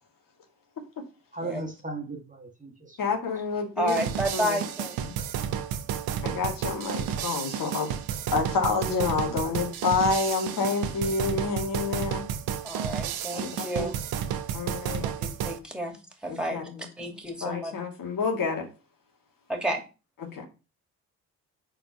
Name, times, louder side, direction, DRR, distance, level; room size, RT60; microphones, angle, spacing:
voice 1, 1.3-3.0 7.1-7.5, right 2 dB, 20° right, 1.8 m, -38 dB
voice 2, 3.0-4.0 4.3-4.6 5.0-5.1 6.2-7.9 8.3-12.2 13.3-13.9 14.5-15.1 16.3-16.8 17.4-18.7 20.2-20.5, left 4 dB, 50° left, 2.1 m, -28 dB
voice 3, 3.8-5.0 12.6-14.0 15.4-16.0 16.2-17.7 19.5-19.8, right 1 dB, ahead, 2.5 m, -31 dB
sound 1, 3.9-15.6, right 9 dB, 60° right, 0.9 m, -32 dB
5.5 x 4.2 x 5.5 m
hypercardioid pair, 50°, 41 cm